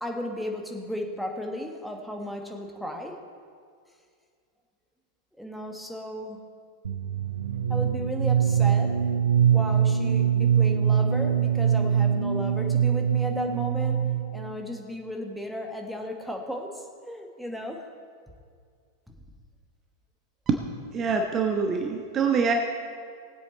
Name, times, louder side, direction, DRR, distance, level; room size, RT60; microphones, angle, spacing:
voice 1, 0.0-3.2 5.4-6.5 7.7-9.0 9.5-14.1 14.3-17.9 19.1-19.2, equal, ahead, 1 dB, 1.4 m, -35 dB
sound 1, 6.8-14.5, right 8 dB, 70° right, 0.5 m, -23 dB
voice 2, 20.9-22.5, right 5 dB, 25° right, 4 dB, 0.9 m, -24 dB
19.0 x 8.1 x 4.2 m, 2.1 s
figure-of-eight pair, 90°, 0 cm